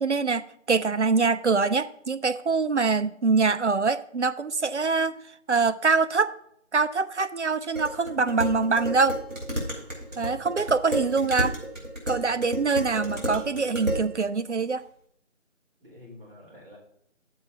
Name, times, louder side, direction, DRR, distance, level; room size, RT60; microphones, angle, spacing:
voice 1, 0.0-5.2 5.5-6.3 6.7-9.2 10.2-11.6 12.1-14.8, right 4 dB, 60° right, 12 dB, 0.5 m, -24 dB
Dishes pots and pans, 7.8-14.1, right 1 dB, 90° right, 4.1 m, -31 dB
voice 2, 10.1-10.5 15.8-16.8, left 2 dB, 45° right, -4 dB, 4.0 m, -48 dB
12.5 x 7.6 x 2.7 m, 0.70 s
figure-of-eight pair, 175°, 39 cm